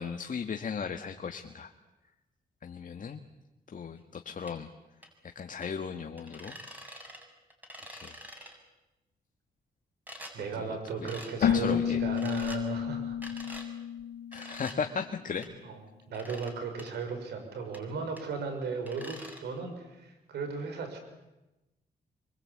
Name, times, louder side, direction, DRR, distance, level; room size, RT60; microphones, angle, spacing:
voice 1, 0.0-1.7 2.6-3.2 3.7-4.7 5.3-6.5 7.9-8.2 10.6-10.8 11.4-12.0 14.3-15.5 16.3-16.4, left 6 dB, 50° left, 5 dB, 1.8 m, -36 dB
sound 1, 4.5-4.6 5.0-5.1 5.6-5.7 6.2-7.2 7.5-8.6 10.1-10.4 11.1-11.3 12.2-12.6 13.2-13.7 14.3-14.8 15.4-15.5 16.1-16.5 16.8-16.9 17.7-17.8 18.2-18.3 18.9-19.4, equal, 10° right, 7.3 m, -46 dB
voice 2, 10.3-13.2 14.4-14.6 15.6-15.8 16.1-21.0, right 5 dB, 90° right, 6 dB, 6.3 m, -36 dB
Keyboard (musical), 11.4-15.0, left 9 dB, 75° left, 0.9 m, -31 dB
27.0 x 24.0 x 8.7 m, 1.0 s
cardioid pair, 75°, 17 cm